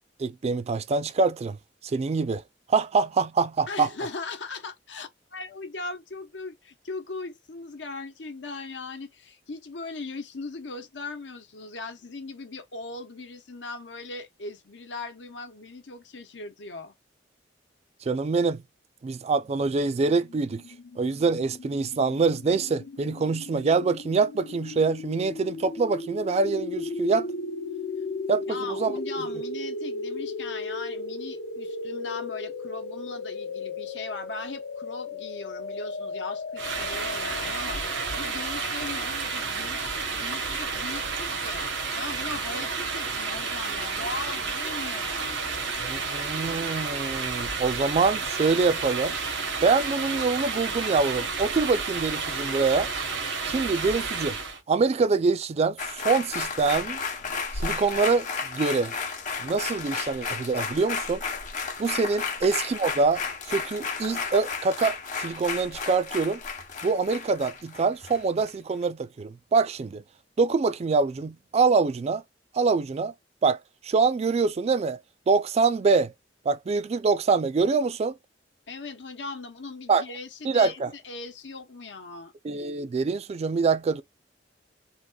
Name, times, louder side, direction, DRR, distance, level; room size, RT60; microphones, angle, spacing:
voice 1, 0.2-1.6 1.8-2.4 2.7-3.9 18.0-18.6 19.0-20.6 21.0-27.3 28.3-29.0 45.8-49.1 49.6-52.9 53.4-54.4 54.7-57.0 57.5-58.9 59.4-61.2 61.8-66.4 66.8-70.0 70.4-72.2 72.5-73.1 73.4-73.6 73.8-75.0 75.3-76.1 76.5-78.2 79.9-80.0 80.4-80.9 82.4-84.0, right 4 dB, 35° right, 0.3 m, -25 dB
voice 2, 3.7-16.9 28.5-37.8 38.1-41.6 41.9-45.7 78.7-82.3, left 3 dB, 90° left, 0.9 m, -39 dB
sound 1, 20.2-39.1, left 3 dB, 70° left, 0.5 m, -36 dB
sound 2, 36.6-54.6, right 4 dB, 90° right, 1.0 m, -31 dB
sound 3, 55.8-68.5 68.8-68.9, left 5 dB, 45° left, 0.9 m, -33 dB
3.6 x 2.4 x 2.3 m
head